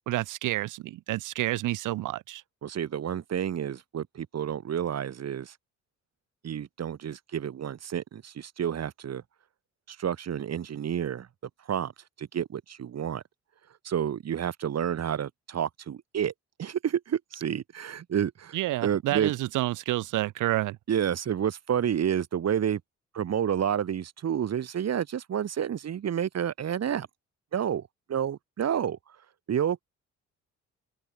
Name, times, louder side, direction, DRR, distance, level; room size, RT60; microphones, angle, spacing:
voice 1, 0.1-2.4 18.5-20.8, right 16 dB, 90° right, 2.4 m, -29 dB
voice 2, 2.6-5.5 6.4-9.2 9.9-11.3 11.7-11.9 12.2-13.2 13.8-16.3 16.6-18.6 18.8-19.3 20.9-22.8 23.1-27.1 27.5-29.0 29.5-29.8, right 9 dB, 55° right, 3.7 m, -29 dB
cardioid pair, 90°, 30 cm